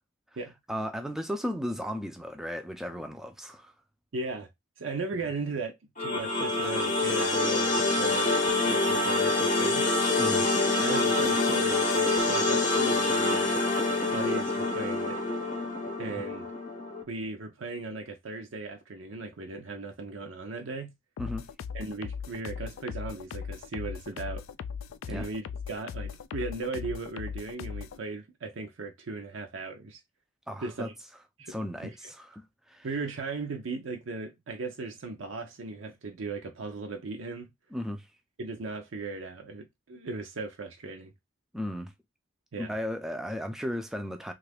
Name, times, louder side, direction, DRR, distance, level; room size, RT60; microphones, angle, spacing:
voice 1, 0.7-3.7 10.2-10.5 16.2-16.3 21.2-21.5 25.1-25.3 30.5-30.9 31.5-32.9 37.7-38.1 41.5-41.9 42.6-44.3, equal, ahead, 0.4 m, -35 dB
voice 2, 4.1-4.5 4.8-8.3 8.7-9.9 10.8-13.5 14.1-15.2 16.0-16.5 17.1-20.9 21.7-24.4 25.1-30.0 30.6-30.9 31.4-31.9 32.8-37.5 38.4-41.1 42.5-42.7, right 3 dB, 70° right, 0.6 m, -37 dB
sound 1, 6.0-17.0, left 2 dB, 40° left, 0.7 m, -26 dB
sound 2, 21.2-28.0, left 6 dB, 75° left, 0.3 m, -38 dB
3.1 x 2.4 x 3.3 m
head